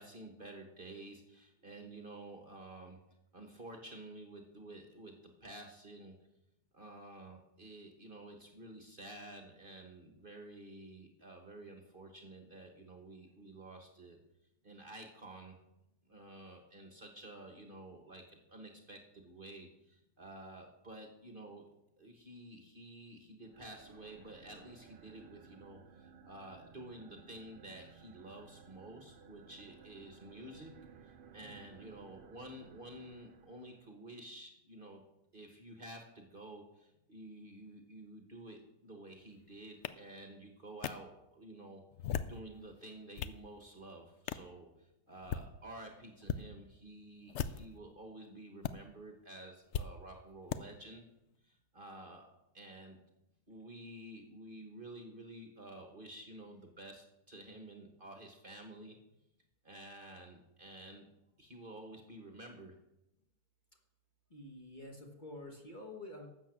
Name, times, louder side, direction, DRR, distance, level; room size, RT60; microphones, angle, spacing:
voice 1, 0.0-3.0 3.3-6.2 6.7-14.2 14.6-15.6 16.0-21.7 22.0-30.7 31.0-35.0 35.3-41.8 42.3-51.1 51.4-52.3 52.5-53.0 53.5-59.0 59.6-61.1 61.4-62.7, right 1 dB, 35° right, 3 dB, 1.3 m, -51 dB
sound 1, 23.4-33.9, right 6 dB, 55° right, 0.5 m, -58 dB
sound 2, 39.8-39.9 40.8-40.9 41.9-42.4 42.9-43.4 44.3-44.5 45.1-45.5 46.2-46.4 47.3-47.8 48.6-48.7 49.7-49.9 50.5-50.6, left 8 dB, 70° left, 0.7 m, -37 dB
voice 2, 64.3-66.3, left 2 dB, 30° left, 1 dB, 1.4 m, -49 dB
13.0 x 7.8 x 6.1 m, 0.90 s
omnidirectional pair, 1.8 m